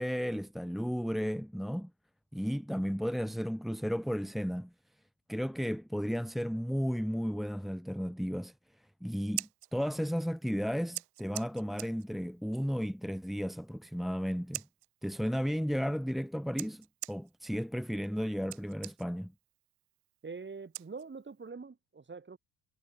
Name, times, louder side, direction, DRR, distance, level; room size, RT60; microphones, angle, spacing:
voice 1, 0.0-1.9 2.3-4.7 5.3-8.5 9.0-14.6 15.0-19.3, equal, ahead, 1.8 m, -34 dB
Scissors, 9.1-21.5, right 16 dB, 70° right, 7.5 m, -48 dB
voice 2, 20.2-22.4, right 4 dB, 25° right, 6.3 m, -44 dB
figure-of-eight pair, 55°, 48 cm